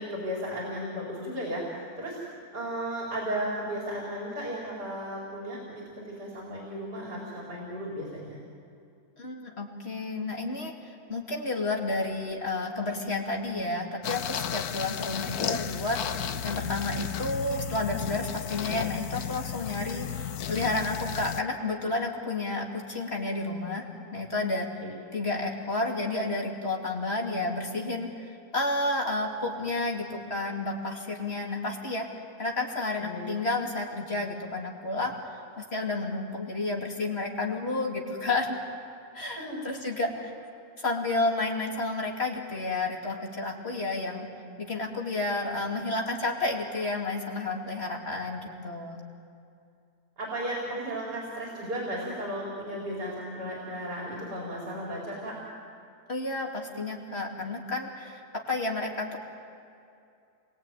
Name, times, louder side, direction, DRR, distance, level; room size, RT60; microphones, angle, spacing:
voice 1, 0.0-2.2 2.5-8.4 24.8-24.9 33.0-33.2 39.4-39.8 50.2-55.4, equal, 90° right, -4 dB, 5.2 m, -35 dB
voice 2, 9.2-10.7 11.1-23.9 24.1-24.7 25.1-32.1 32.4-35.1 35.6-38.6 39.1-40.3 40.8-44.3 44.6-49.0 56.1-58.2 58.5-59.2, left 2 dB, 40° left, 0 dB, 2.9 m, -31 dB
sound 1, 14.0-21.4, left 9 dB, 70° left, 1.3 m, -33 dB
28.5 x 22.0 x 9.1 m, 2.5 s
omnidirectional pair, 1.7 m